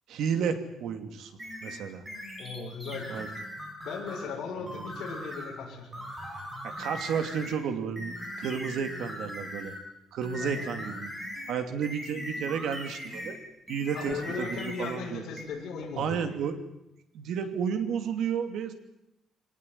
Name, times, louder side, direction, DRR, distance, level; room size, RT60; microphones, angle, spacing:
voice 1, 0.1-1.3 1.6-2.0 3.1-3.3 4.6-4.8 6.6-9.7 10.1-11.1 11.5-13.4 13.7-15.2 16.0-16.6 17.1-18.7, right 7 dB, 65° right, 8 dB, 2.7 m, -32 dB
sound 1, 1.4-4.3 4.7-5.6 5.9-7.6 8.0-9.9 10.2-13.4 13.7-15.0 15.4-15.5, equal, 10° right, 6.4 m, -40 dB
voice 2, 2.4-3.3 3.8-6.1 10.4-10.6 13.9-16.3, left 5 dB, 55° left, -2 dB, 7.2 m, -37 dB
24.5 x 18.5 x 9.6 m, 0.90 s
cardioid pair, 175°, 0 cm